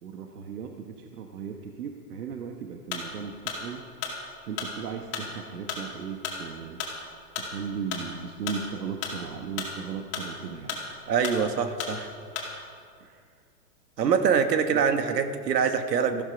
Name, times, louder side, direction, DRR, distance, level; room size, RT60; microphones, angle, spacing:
voice 1, 0.0-3.8 4.5-6.8 7.3-10.8 13.0-13.4 14.7-14.9, right 6 dB, 70° right, 3 dB, 1.3 m, -37 dB
sound 1, 2.9-12.7, left 5 dB, 25° left, 2.3 m, -35 dB
voice 2, 11.1-12.1 14.0-16.2, right 6 dB, 90° right, 8 dB, 1.6 m, -24 dB
14.5 x 12.5 x 5.2 m, 2.2 s
hypercardioid pair, 160°, 48 cm